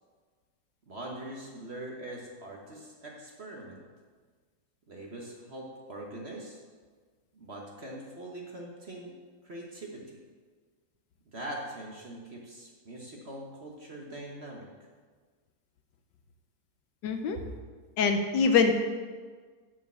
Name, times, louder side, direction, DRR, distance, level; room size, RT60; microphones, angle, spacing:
voice 1, 0.9-3.8 4.9-6.6 7.3-10.2 11.3-14.7 17.3-17.5, right 1 dB, 40° right, -1 dB, 1.1 m, -42 dB
voice 2, 17.0-17.4 18.0-18.7, left 5 dB, 70° left, 6 dB, 1.3 m, -24 dB
6.8 x 6.4 x 7.4 m, 1.5 s
omnidirectional pair, 2.1 m